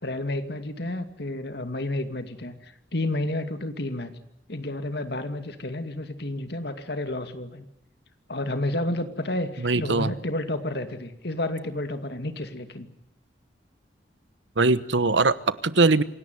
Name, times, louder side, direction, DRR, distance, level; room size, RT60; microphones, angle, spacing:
voice 1, 0.0-4.2 4.5-7.7 8.3-12.9, left 1 dB, 60° left, 8 dB, 2.4 m, -31 dB
voice 2, 9.6-10.1 14.6-16.0, right 3 dB, 85° right, 15 dB, 1.1 m, -21 dB
27.0 x 17.5 x 9.6 m, 0.80 s
head